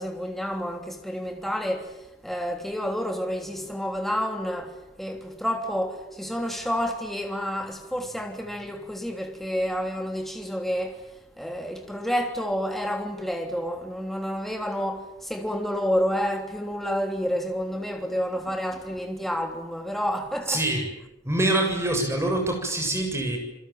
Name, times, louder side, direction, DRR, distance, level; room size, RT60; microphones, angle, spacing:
voice 1, 0.0-1.9 2.2-11.0 11.4-20.6, equal, ahead, 3.2 m, -29 dB
voice 2, 20.5-20.9 21.2-23.4, right 1 dB, 15° right, 7.4 m, -25 dB
29.0 x 22.5 x 9.2 m
head